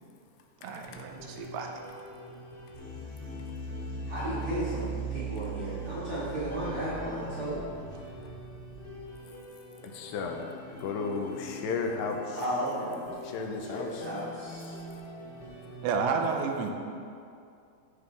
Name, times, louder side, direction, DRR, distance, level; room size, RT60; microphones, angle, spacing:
voice 1, 0.6-1.7 15.8-16.7, right 5 dB, 90° right, 3 dB, 2.9 m, -30 dB
sound 1, 0.7-15.9, left 2 dB, 55° left, 1.2 m, -46 dB
sound 2, 2.7-9.3, right 5 dB, 70° right, 3.0 m, -39 dB
voice 2, 4.1-7.6 12.3-13.1 13.6-14.7, equal, 45° right, -9 dB, 1.9 m, -34 dB
voice 3, 9.9-10.5 10.8-12.4 13.2-14.0, left 4 dB, 80° left, 2 dB, 2.6 m, -33 dB
15.5 x 5.3 x 3.5 m, 2.5 s
omnidirectional pair, 5.0 m